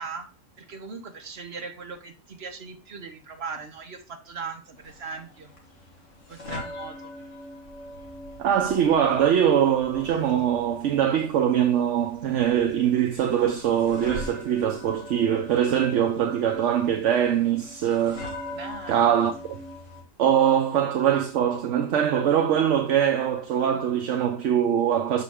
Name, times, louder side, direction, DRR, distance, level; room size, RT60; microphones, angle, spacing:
voice 1, 0.0-5.5 6.3-7.1 18.5-19.4, right 5 dB, 50° right, 1.4 m, -39 dB
sound 1, 4.7-20.0, left 1 dB, 65° left, 2.0 m, -42 dB
voice 2, 8.4-18.2 18.9-19.6 20.2-25.2, right 9 dB, 65° right, 1.0 m, -22 dB
6.5 x 5.3 x 3.6 m
omnidirectional pair, 1.4 m